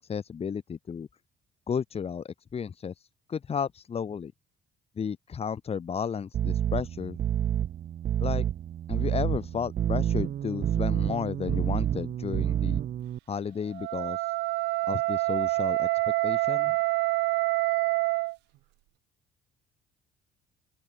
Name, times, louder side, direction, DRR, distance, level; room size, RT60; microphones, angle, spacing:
voice 1, 0.1-1.1 1.7-2.9 3.3-4.3 5.0-7.2 8.2-8.5 8.9-12.8 13.3-14.2 14.9-15.9 16.2-16.8, left 7 dB, 35° left, 2.3 m, -33 dB
sound 1, 6.3-13.2, right 10 dB, 50° right, 0.9 m, -28 dB
Wind instrument woodwind instrument, 13.7-18.4, right 20 dB, 90° right, 1.6 m, -27 dB
open air
cardioid pair, 110°, 17 cm